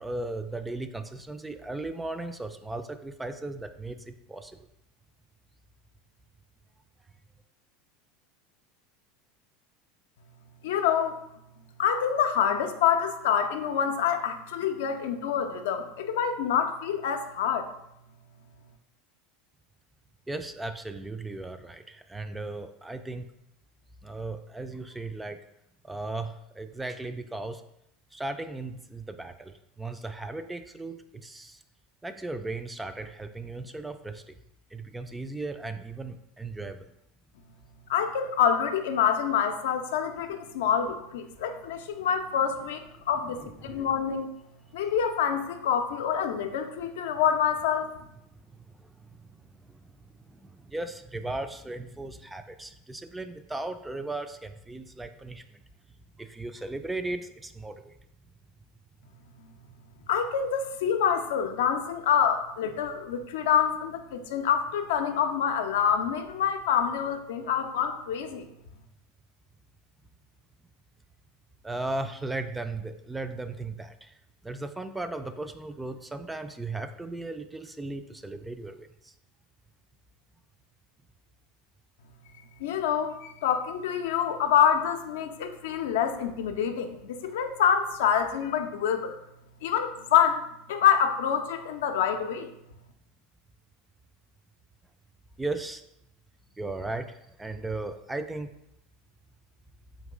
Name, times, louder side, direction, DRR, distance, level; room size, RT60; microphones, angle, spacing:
voice 1, 0.0-4.6 20.3-23.3 24.0-25.4 25.8-27.6 28.1-31.6 32.0-34.4 34.7-36.9 43.4-43.9 48.8-49.8 50.3-55.6 56.2-57.9 71.6-74.1 74.4-79.1 95.4-95.8 96.6-98.5, right 2 dB, 10° right, 9 dB, 0.3 m, -36 dB
voice 2, 10.6-11.2 11.8-17.7 37.9-44.3 44.7-47.9 60.1-68.5 82.6-89.2 89.6-92.5, left 8 dB, 75° left, 6 dB, 0.4 m, -26 dB
4.0 x 2.9 x 3.7 m, 0.80 s
hypercardioid pair, 95°, 0 cm